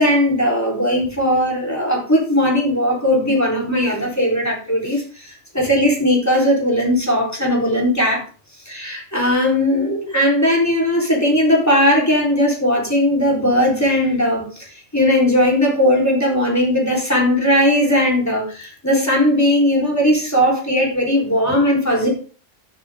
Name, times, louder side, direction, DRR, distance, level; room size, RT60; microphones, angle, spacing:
voice 1, 0.0-8.2 8.7-14.7 14.9-22.1, left 1 dB, 10° left, -2 dB, 3.7 m, -18 dB
11.5 x 7.8 x 3.6 m, 0.38 s
omnidirectional pair, 1.3 m